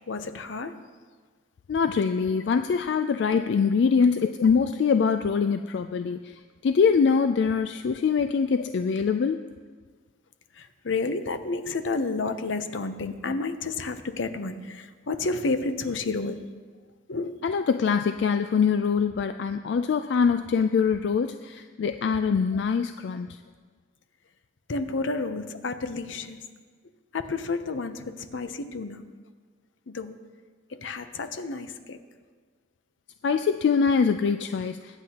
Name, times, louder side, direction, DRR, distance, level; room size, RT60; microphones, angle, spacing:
voice 1, 0.1-0.7 3.3-3.4 4.4-4.5 10.6-16.4 17.1-17.4 22.5-22.6 24.7-26.4 27.1-29.1 29.9-30.2 30.7-32.0, left 3 dB, 80° left, 9 dB, 0.7 m, -31 dB
voice 2, 1.7-6.3 6.6-9.4 17.4-23.3 33.2-35.0, left 5 dB, 60° left, 9 dB, 0.3 m, -23 dB
22.5 x 8.0 x 2.9 m, 1.5 s
head